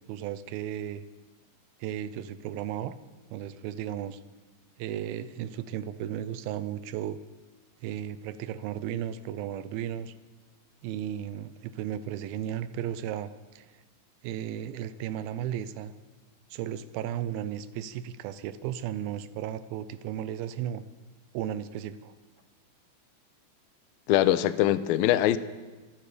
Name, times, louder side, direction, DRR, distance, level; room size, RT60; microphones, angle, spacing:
voice 1, 0.1-1.1 1.8-2.9 3.3-4.2 4.8-7.2 7.8-10.1 10.8-13.8 14.2-15.9 16.5-20.8 21.3-22.1, right 10 dB, 85° right, 2.5 m, -35 dB
voice 2, 24.1-25.4, left 13 dB, 85° left, 2.4 m, -22 dB
25.5 x 9.4 x 5.0 m
omnidirectional pair, 4.2 m